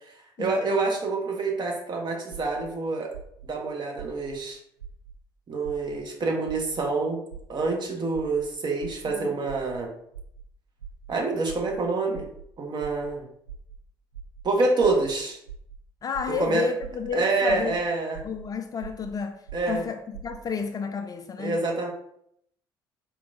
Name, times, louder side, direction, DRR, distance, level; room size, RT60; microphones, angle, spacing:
voice 1, 0.4-3.1 3.4-4.6 5.5-7.2 7.5-9.9 11.1-12.3 12.6-13.3 14.4-15.4 16.4-16.7 17.1-18.2 19.5-19.8 21.4-21.9, right 3 dB, 40° right, 0.9 m, -27 dB
sound 1, 2.3-2.6 3.1-3.5 4.0-4.3 4.8-5.1 5.6-6.0 6.5-6.8 7.3-7.6 8.1-8.4 8.8-9.1 9.5-9.8 10.1-10.4 10.8-11.1 11.5-11.8 12.1-12.4 12.8-13.1 13.5-13.8 14.1-14.4 14.8-15.1 15.5-15.8 16.1-16.4 16.8-17.1 17.5-17.8 18.1-18.4 18.8-19.1 19.5-19.8 20.1-20.4, right 7 dB, 85° right, 0.4 m, -42 dB
voice 2, 16.0-17.7 18.2-19.4 19.7-21.6, left 5 dB, 30° left, 0.3 m, -31 dB
4.3 x 2.2 x 2.6 m
hypercardioid pair, 55°, 12 cm